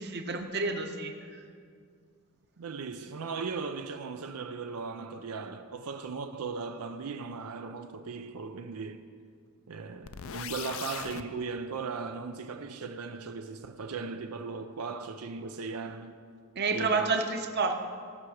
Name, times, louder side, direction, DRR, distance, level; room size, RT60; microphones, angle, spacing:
voice 1, 0.0-1.4 16.6-17.7, right 4 dB, 45° right, 0.9 m, -29 dB
voice 2, 2.6-9.0 9.7-16.2 16.7-17.2, right 4 dB, 90° right, 0.5 m, -38 dB
sound 1, 10.0-11.2, left 8 dB, 65° left, 0.5 m, -39 dB
17.0 x 5.9 x 6.4 m
head